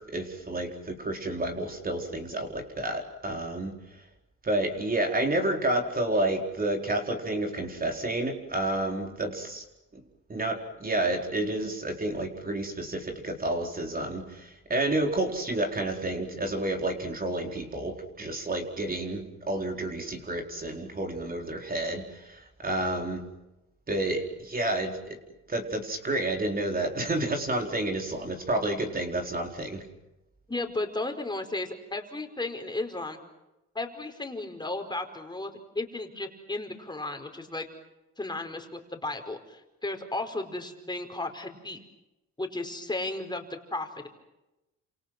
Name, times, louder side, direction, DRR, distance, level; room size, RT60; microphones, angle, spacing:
voice 1, 0.1-3.7 4.4-9.6 9.9-10.0 10.3-23.2 23.9-25.2 25.5-29.8, right 1 dB, 30° right, 3 dB, 4.4 m, -30 dB
voice 2, 30.5-33.2 33.7-37.7 38.2-41.8 42.4-44.1, left 2 dB, 15° left, 5 dB, 4.9 m, -34 dB
29.5 x 27.5 x 6.2 m, 0.97 s
cardioid pair, 90°, 30 cm